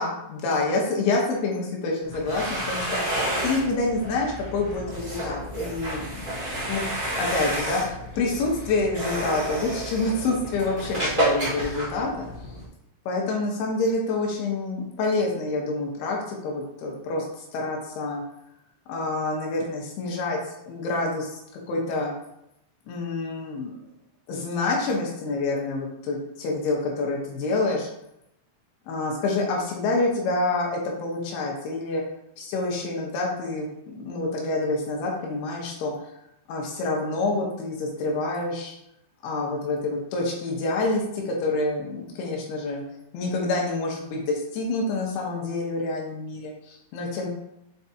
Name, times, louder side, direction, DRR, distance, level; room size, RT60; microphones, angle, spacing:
voice 1, 0.0-12.3 13.1-18.2 18.9-21.4 21.7-22.1 22.9-23.7 24.3-27.9 28.9-32.0 32.4-35.9 36.5-38.7 39.2-42.8 43.1-47.3, left 2 dB, 90° left, -1 dB, 3.2 m, -27 dB
sound 1, 2.0-12.7, right 1 dB, 25° right, 1.2 m, -30 dB
7.3 x 4.7 x 2.8 m, 0.82 s
omnidirectional pair, 4.5 m